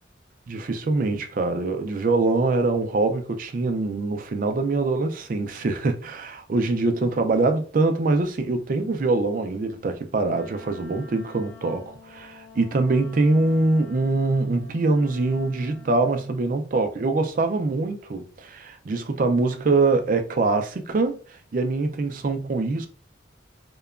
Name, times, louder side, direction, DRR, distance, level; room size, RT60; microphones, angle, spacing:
voice 1, 0.5-21.2 21.5-22.9, right 3 dB, 45° right, 0.4 m, -24 dB
Wind instrument woodwind instrument, 10.3-16.4, left 3 dB, 85° left, 0.7 m, -48 dB
2.8 x 2.2 x 2.3 m
head